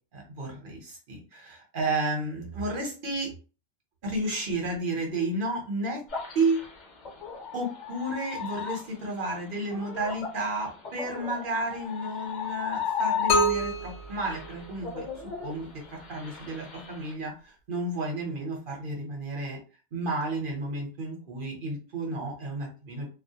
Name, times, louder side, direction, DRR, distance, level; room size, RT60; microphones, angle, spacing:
voice 1, 0.1-3.3 4.0-6.0 6.3-6.6 7.5-15.1 15.4-19.6 19.9-23.1, right 2 dB, 55° right, 0 dB, 0.9 m, -32 dB
sound 1, 6.1-13.9 14.2-17.1, left 7 dB, 45° left, 0.8 m, -35 dB
sound 2, 13.3-15.2, equal, 75° left, 0.9 m, -28 dB
2.3 x 2.1 x 2.7 m, 0.36 s
omnidirectional pair, 1.2 m